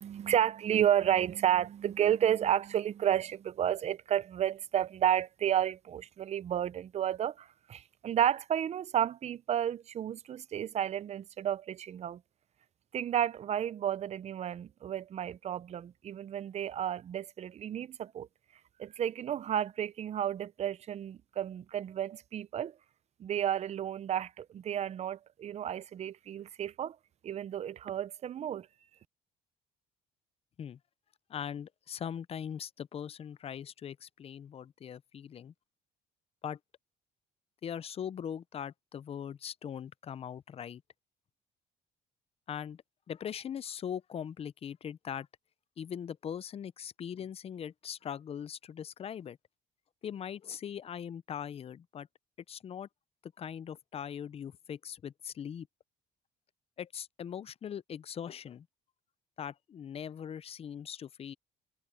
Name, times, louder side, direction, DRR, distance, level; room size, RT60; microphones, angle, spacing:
voice 1, 0.0-12.2 12.9-18.3 18.8-22.8 23.2-27.0 27.2-28.7, right 10 dB, 40° right, 0.6 m, -31 dB
voice 2, 31.3-35.5 36.4-36.6 37.6-40.8 42.5-45.3 45.8-49.4 50.0-52.1 52.5-52.9 53.2-55.7 56.8-58.7 59.4-61.3, left 8 dB, 35° left, 0.5 m, -41 dB
cardioid pair, 110°, 17 cm